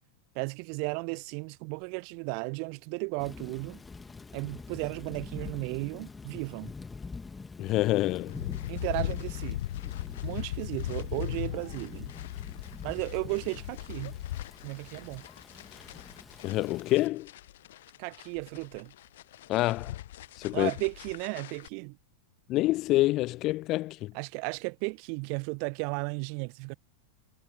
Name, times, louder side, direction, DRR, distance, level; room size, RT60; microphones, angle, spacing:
voice 1, 0.3-3.8 4.3-6.7 8.7-9.6 10.2-12.1 12.8-14.2 14.6-15.2 18.0-18.9 20.5-22.0 24.1-26.7, right 40 dB or more, 45° right, 1.0 m, -35 dB
Thunder / Rain, 3.2-17.1, left 4 dB, 10° left, 2.1 m, -46 dB
voice 2, 7.6-8.4 16.4-17.3 19.5-20.0 20.4-20.7 22.5-24.1, left 17 dB, 35° left, 0.3 m, -27 dB
sound 1, 8.3-21.7, left 14 dB, 55° left, 0.8 m, -39 dB
figure-of-eight pair, 90°, 0 cm